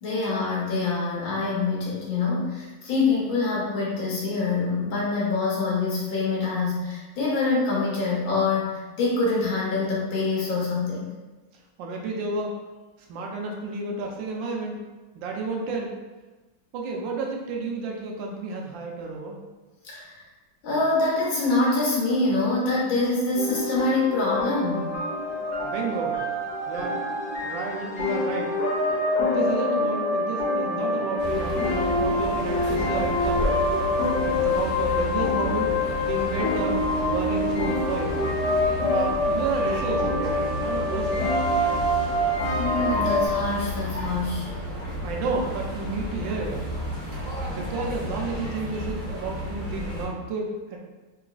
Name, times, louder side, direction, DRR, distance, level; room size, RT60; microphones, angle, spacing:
voice 1, 0.0-11.1 19.8-20.2 20.6-24.9 42.5-44.5, left 3 dB, 75° left, -5 dB, 1.8 m, -25 dB
voice 2, 11.8-12.6 13.1-14.8 15.1-15.9 16.7-19.4 25.6-26.2 26.7-27.0 27.4-28.5 29.3-38.4 38.9-41.3 45.0-46.7 47.5-50.8, right 3 dB, 75° right, 0 dB, 1.3 m, -31 dB
sound 1, 23.3-43.3, left 1 dB, 40° left, 1.0 m, -26 dB
sound 2, 31.2-50.0, equal, 45° right, 0.5 m, -32 dB
3.8 x 3.0 x 2.5 m, 1.2 s
omnidirectional pair, 2.2 m